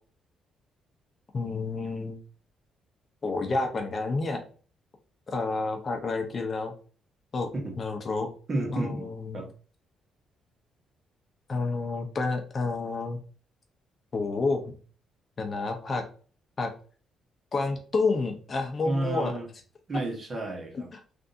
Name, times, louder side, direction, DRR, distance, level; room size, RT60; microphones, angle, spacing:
voice 1, 1.3-2.2 3.2-4.4 5.3-6.7 7.3-7.5 7.8-8.3 8.7-9.4 11.5-13.2 14.1-14.6 15.4-16.0 16.6-16.7 17.5-19.4 20.9-21.0, left 3 dB, 40° left, 4 dB, 0.7 m, -29 dB
voice 2, 8.5-9.5 18.8-19.5 19.9-20.9, right 2 dB, 40° right, 0 dB, 1.2 m, -31 dB
3.5 x 2.6 x 2.6 m, 0.40 s
cardioid pair, 90°, 0 cm